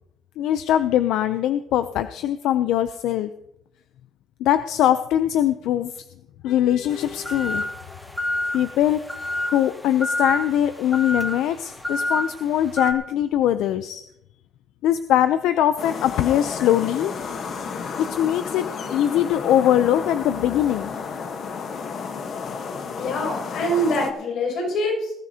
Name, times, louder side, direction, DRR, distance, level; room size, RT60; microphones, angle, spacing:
voice 1, 0.4-3.3 4.4-6.0 6.4-7.7 8.5-9.0 9.5-14.0 14.8-17.1 18.0-18.7 18.9-20.9, left 11 dB, 90° left, 11 dB, 0.5 m, -21 dB
sound 1, 6.9-12.9, left 1 dB, 5° left, 1.2 m, -29 dB
sound 2, 15.8-24.1, left 5 dB, 45° left, 1.2 m, -32 dB
voice 2, 22.9-25.1, equal, 65° left, 0 dB, 6.8 m, -24 dB
19.5 x 13.5 x 2.8 m, 0.81 s
cardioid pair, 170°, 0 cm